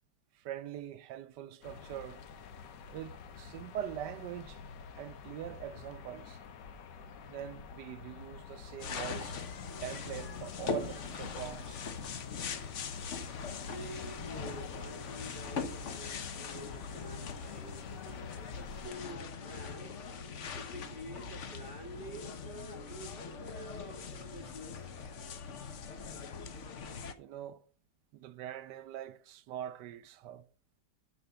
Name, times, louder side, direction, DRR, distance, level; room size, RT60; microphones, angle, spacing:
voice 1, 0.3-2.2 2.9-4.6 5.0-6.4 7.3-9.4 9.8-11.8 27.2-27.6 28.1-30.5, right 11 dB, 80° right, 1.2 m, -43 dB
sound 1, 1.6-18.9, left 6 dB, 80° left, 1.6 m, -49 dB
sound 2, 8.8-27.1, left 5 dB, 50° left, 1.0 m, -41 dB
voice 2, 13.6-19.9 20.5-24.9, right 1 dB, 30° left, 2.2 m, -49 dB
13.0 x 5.2 x 5.6 m
omnidirectional pair, 1.9 m